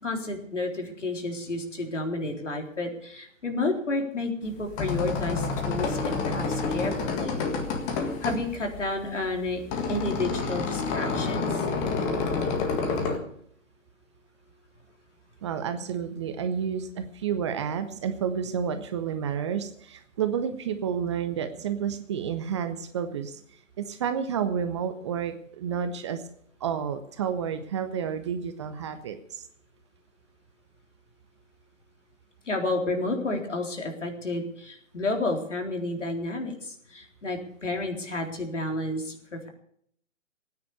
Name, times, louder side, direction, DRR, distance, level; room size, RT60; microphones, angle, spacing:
voice 1, 0.0-7.4 8.2-9.6 9.9-11.6 32.5-39.5, left 2 dB, 65° left, 3 dB, 3.9 m, -31 dB
sound 1, 4.5-13.2, left 4 dB, 20° left, 1.8 m, -29 dB
voice 2, 15.4-23.4 23.8-26.2 26.6-29.4, right 7 dB, 20° right, 9 dB, 0.8 m, -30 dB
18.0 x 9.6 x 6.9 m, 0.64 s
figure-of-eight pair, 135°, 39 cm